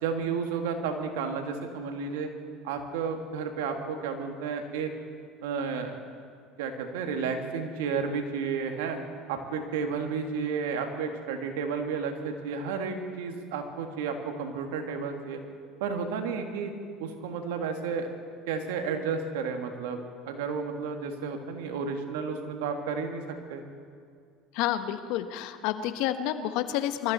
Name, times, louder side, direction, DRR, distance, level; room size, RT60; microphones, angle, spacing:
voice 1, 0.0-2.3 2.6-4.9 5.4-5.9 6.6-9.0 9.3-15.4 15.8-16.7 17.0-18.1 18.5-20.0 20.3-23.6, right 5 dB, 85° right, 5 dB, 1.9 m, -32 dB
voice 2, 24.5-27.1, left 12 dB, 70° left, 10 dB, 1.0 m, -29 dB
23.5 x 14.0 x 4.2 m, 2.2 s
supercardioid pair, 95°, 0 cm